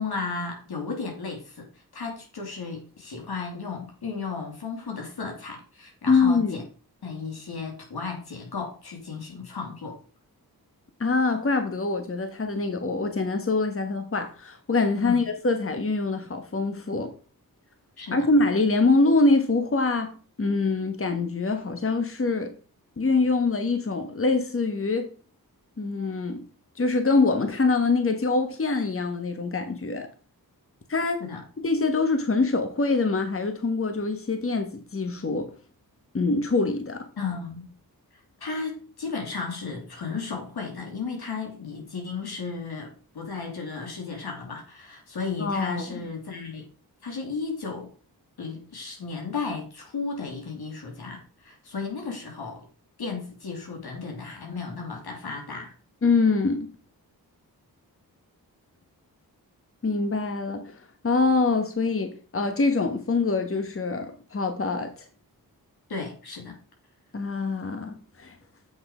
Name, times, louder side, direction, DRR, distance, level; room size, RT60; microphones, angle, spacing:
voice 1, 0.0-6.6 7.0-10.0 15.0-15.2 18.0-18.3 31.2-31.4 37.2-37.7 38.4-46.6 47.0-47.9 48.4-52.7 53.0-55.7 65.9-66.6, left 4 dB, 80° left, 2.9 m, -34 dB
voice 2, 6.1-6.6 11.0-17.1 18.1-22.5 23.0-25.1 25.8-26.4 26.7-30.1 30.9-31.3 31.6-35.5 36.1-37.0 45.4-45.8 56.0-56.7 59.8-65.1 67.1-68.4, left 3 dB, 35° left, 1.3 m, -24 dB
8.1 x 5.8 x 4.9 m
cardioid pair, 60°, 37 cm